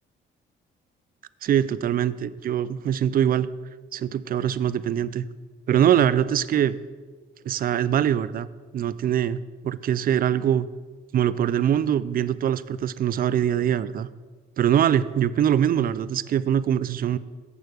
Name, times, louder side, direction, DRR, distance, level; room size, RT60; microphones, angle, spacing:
voice 1, 1.4-3.5 3.9-5.3 5.7-6.8 7.5-8.5 8.7-9.4 9.6-10.7 11.1-14.1 14.6-17.2, right 9 dB, 45° right, 16 dB, 0.4 m, -23 dB
7.9 x 6.4 x 4.9 m, 1.4 s
cardioid pair, 90°, 20 cm